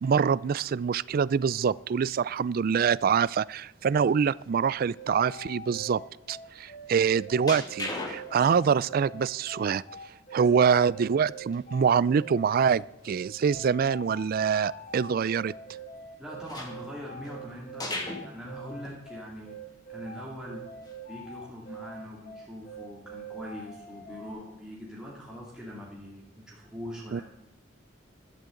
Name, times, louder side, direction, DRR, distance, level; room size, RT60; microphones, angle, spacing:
voice 1, 0.0-6.0 6.3-9.8 10.3-15.5 27.1-27.2, right 6 dB, 50° right, 20 dB, 0.3 m, -25 dB
sound 1, 4.9-24.3, right 2 dB, 45° left, 4.8 m, -44 dB
sound 2, 7.5-8.8 9.2-9.3 11.5-11.6 11.9-12.0 12.5-12.6 16.4-17.4 17.8-18.3 18.8-19.0 19.5-19.6 20.8-20.9 21.4-21.7 23.9-24.1, left 2 dB, 20° left, 2.2 m, -37 dB
voice 2, 16.0-19.6 19.9-20.6 21.1-27.2, equal, 5° right, -6 dB, 2.4 m, -42 dB
16.0 x 12.0 x 3.9 m, 0.89 s
head